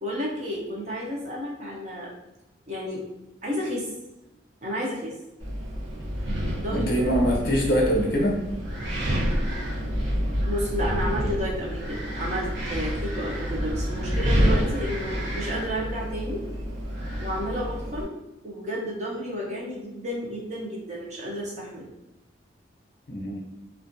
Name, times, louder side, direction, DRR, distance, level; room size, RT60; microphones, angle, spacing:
voice 1, 0.0-2.1 2.7-3.0 3.4-3.9 4.6-5.1 6.6-6.9 10.4-16.4 17.2-18.1 18.4-21.9, equal, 40° right, -4 dB, 0.5 m, -31 dB
Wind, 5.4-18.0, equal, 85° right, 0.8 m, -28 dB
voice 2, 6.7-8.4 23.1-23.4, equal, 55° left, -1 dB, 0.6 m, -23 dB
2.4 x 2.2 x 2.5 m, 0.94 s
head